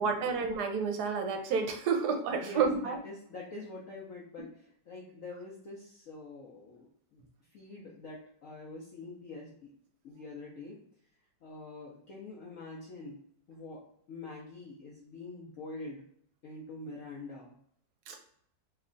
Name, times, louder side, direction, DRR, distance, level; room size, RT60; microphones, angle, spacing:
voice 1, 0.0-3.0 18.1-18.2, right 5 dB, 70° right, 4 dB, 1.1 m, -30 dB
voice 2, 2.3-7.2 7.5-9.7 10.0-10.8 11.4-13.2 13.5-13.8 14.1-16.0 16.4-17.6, left 3 dB, 60° left, -4 dB, 0.9 m, -45 dB
3.2 x 2.3 x 3.7 m, 0.65 s
omnidirectional pair, 1.8 m